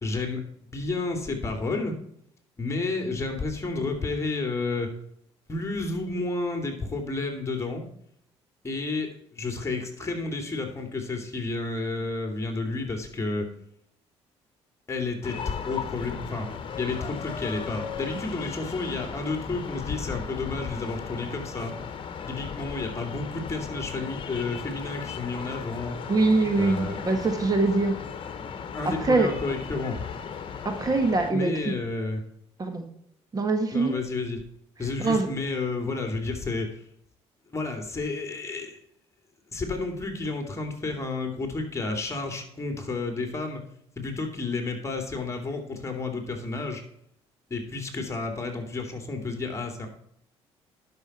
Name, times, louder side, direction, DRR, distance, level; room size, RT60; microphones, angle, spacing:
voice 1, 0.0-1.9 2.6-4.9 5.5-7.8 8.6-13.5 14.9-16.5 16.7-21.7 22.3-26.0 26.6-27.0 28.7-30.1 31.3-32.2 33.7-34.4 34.8-36.7 37.5-38.8 39.5-43.6 44.0-46.8 47.5-49.9, left 3 dB, 25° left, 5 dB, 2.8 m, -31 dB
sound 1, 15.2-31.3, left 6 dB, 50° left, 1.3 m, -36 dB
voice 2, 26.1-27.9 28.8-29.3 30.6-31.7 32.6-32.9 33.3-33.9 35.0-35.3, right 3 dB, 35° right, 6 dB, 1.7 m, -23 dB
11.0 x 6.2 x 4.4 m, 0.70 s
cardioid pair, 85°, 12 cm